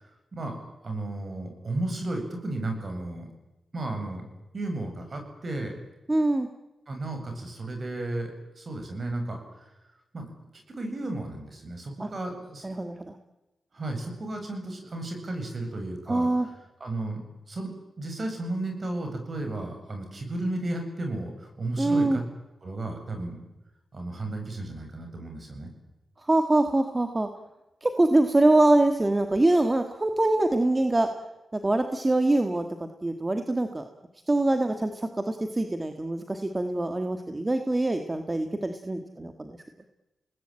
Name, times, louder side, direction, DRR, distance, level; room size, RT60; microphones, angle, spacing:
voice 1, 0.8-3.3 3.7-4.2 4.5-5.7 6.9-9.4 10.1-10.3 10.7-12.7 13.7-16.3 16.8-17.7 18.0-22.2 22.6-23.4 23.9-25.7, right 2 dB, 45° right, 4 dB, 7.8 m, -33 dB
voice 2, 6.1-6.5 12.0-12.1 12.6-13.1 16.1-16.5 21.8-22.2 26.3-27.3 27.8-31.1 31.5-32.7 33.0-33.8 34.3-39.5, right 2 dB, 25° right, 7 dB, 1.9 m, -24 dB
29.0 x 19.5 x 9.0 m, 1.0 s
cardioid pair, 70°, 0 cm